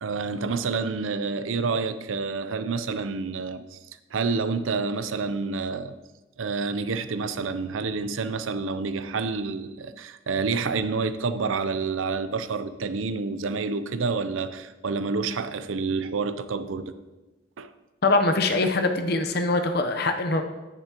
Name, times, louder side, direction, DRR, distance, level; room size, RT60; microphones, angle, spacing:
voice 1, 0.0-3.8 4.1-6.0 6.4-16.9 17.6-17.7, right 4 dB, 85° right, 0.6 m, -28 dB
voice 2, 18.0-20.4, left 2 dB, 55° left, 0.8 m, -23 dB
10.5 x 9.8 x 2.9 m
head